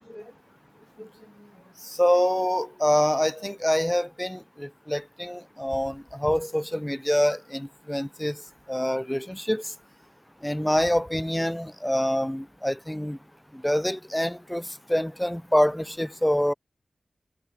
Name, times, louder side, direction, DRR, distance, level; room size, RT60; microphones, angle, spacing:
voice 1, 2.0-8.3 8.7-9.6 10.4-13.2 13.6-14.6 14.9-16.5, equal, 5° left, 0.6 m, -25 dB
cardioid pair, 55°, 0 cm